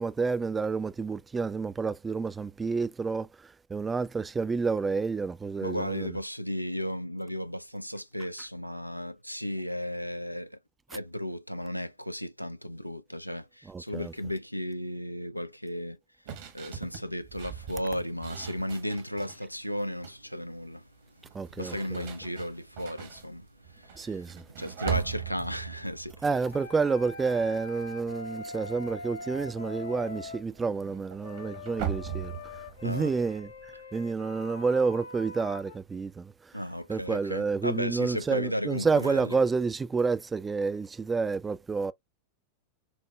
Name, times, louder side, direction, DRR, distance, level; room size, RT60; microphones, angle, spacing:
voice 1, 0.0-3.3 3.7-6.2 13.7-14.1 21.3-22.1 24.0-24.4 26.2-32.4 32.8-33.5 33.9-36.3 36.9-41.9, right 4 dB, 15° right, 0.3 m, -29 dB
voice 2, 5.6-10.6 10.9-16.0 16.5-20.8 21.6-24.1 24.6-26.1 32.8-33.1 36.5-39.4, equal, 90° left, 0.3 m, -34 dB
sound 1, 16.3-19.4 19.8-20.3 21.2-27.4 27.7-28.1 28.3-33.8, right 9 dB, 55° right, 1.0 m, -40 dB
sound 2, 26.5-30.4 31.2-35.8, left 3 dB, 65° left, 0.7 m, -43 dB
6.0 x 2.2 x 2.2 m
figure-of-eight pair, 90°, 0 cm